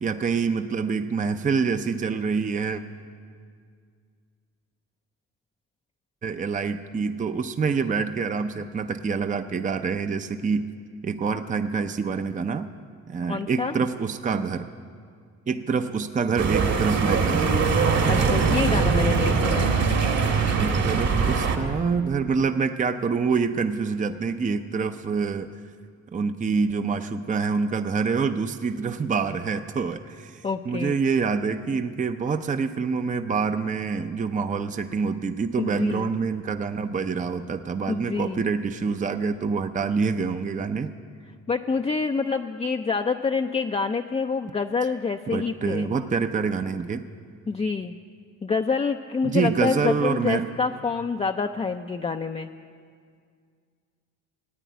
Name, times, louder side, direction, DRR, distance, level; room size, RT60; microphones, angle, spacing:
voice 1, 0.0-2.8 6.2-10.7 11.0-12.7 13.1-14.7 15.5-17.6 20.6-25.5 26.1-40.9 45.3-47.0 49.2-50.5, right 5 dB, 25° right, 8 dB, 0.6 m, -26 dB
voice 2, 13.3-13.7 18.1-19.8 30.4-31.0 35.6-36.1 37.9-38.4 41.5-45.9 47.5-47.9 48.4-52.5, left 4 dB, 20° left, 4 dB, 0.5 m, -27 dB
sound 1, 16.4-21.6, right 5 dB, 60° right, 2.0 m, -22 dB
15.0 x 9.2 x 9.2 m, 2.1 s
cardioid pair, 90°, 30 cm